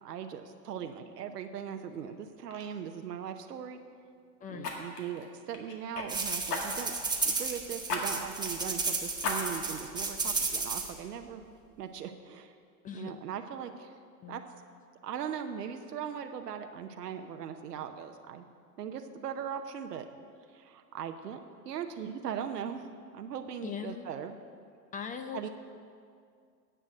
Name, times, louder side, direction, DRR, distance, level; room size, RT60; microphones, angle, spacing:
voice 1, 0.0-3.8 4.5-7.0 7.2-11.4 11.8-12.5 12.9-14.0 14.3-14.4 15.0-18.4 18.8-20.1 20.5-22.9 23.1-24.3 25.3-25.5, right 8 dB, 75° right, 6 dB, 0.9 m, -39 dB
Fire, 1.9-2.1 2.5-2.7 4.6-6.1 6.5-7.0 7.9-8.0 8.4-8.5 9.2-9.8 10.3-10.4, left 4 dB, 70° left, 2.1 m, -36 dB
voice 2, 4.4-4.7 12.8-13.1 14.2-14.4 23.6-24.1 24.9-25.5, left 7 dB, 20° left, 7 dB, 0.5 m, -40 dB
sound 1, 6.1-10.9, right 4 dB, 10° right, 1.1 m, -33 dB
10.0 x 7.8 x 7.7 m, 2.2 s
hypercardioid pair, 95°, 48 cm